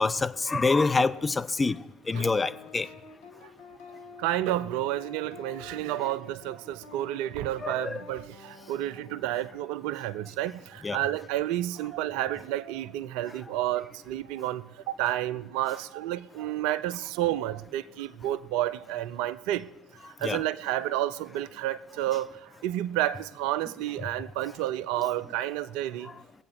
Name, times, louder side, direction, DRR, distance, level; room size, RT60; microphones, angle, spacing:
voice 1, 0.0-1.8 2.1-2.9 7.6-8.0 10.8-11.0 20.2-20.4, left 3 dB, 20° left, 0.6 m, -26 dB
sound 1, 2.1-9.6, left 5 dB, 70° left, 1.5 m, -49 dB
voice 2, 4.2-19.7 20.0-26.1, right 13 dB, 60° right, 0.4 m, -30 dB
21.5 x 8.3 x 4.6 m
figure-of-eight pair, 55°, 0 cm